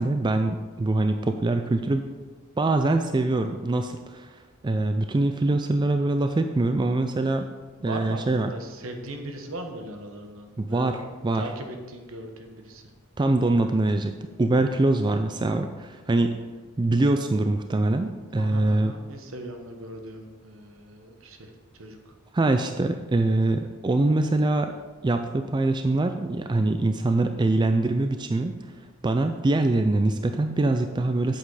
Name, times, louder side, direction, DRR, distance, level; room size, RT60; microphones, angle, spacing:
voice 1, 0.0-2.0 2.6-7.5 7.8-8.5 10.6-11.5 13.2-16.5 16.8-18.9 22.3-24.7 25.0-28.6 29.0-31.4, right 2 dB, 20° right, 7 dB, 0.3 m, -24 dB
voice 2, 7.8-12.8 18.3-22.0, right 1 dB, 70° right, 5 dB, 1.2 m, -39 dB
8.2 x 7.9 x 4.8 m, 1.4 s
head